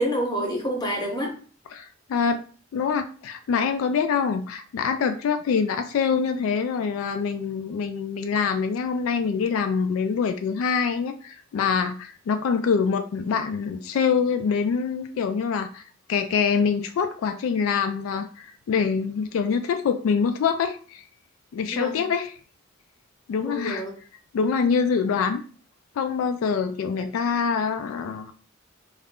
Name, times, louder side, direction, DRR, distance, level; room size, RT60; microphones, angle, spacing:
voice 1, 0.0-1.3 21.7-22.0 23.4-23.9, equal, 20° left, 1 dB, 0.7 m, -27 dB
voice 2, 1.7-2.4 2.7-15.8 16.1-21.0 21.5-22.3 23.3-23.8 24.3-25.4 26.0-28.3, left 6 dB, 85° left, 9 dB, 0.3 m, -25 dB
2.4 x 2.1 x 3.5 m, 0.40 s
head